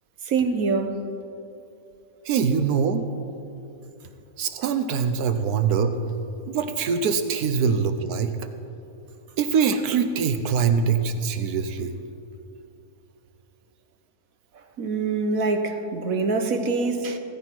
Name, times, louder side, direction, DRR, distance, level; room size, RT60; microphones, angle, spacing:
voice 1, 0.3-1.0 14.8-17.2, right 4 dB, 70° right, 6 dB, 1.5 m, -24 dB
voice 2, 2.2-3.0 4.4-5.9 6.5-8.5 9.4-12.0, right 6 dB, 90° right, 8 dB, 1.3 m, -23 dB
16.5 x 14.0 x 4.6 m, 2.7 s
omnidirectional pair, 1.6 m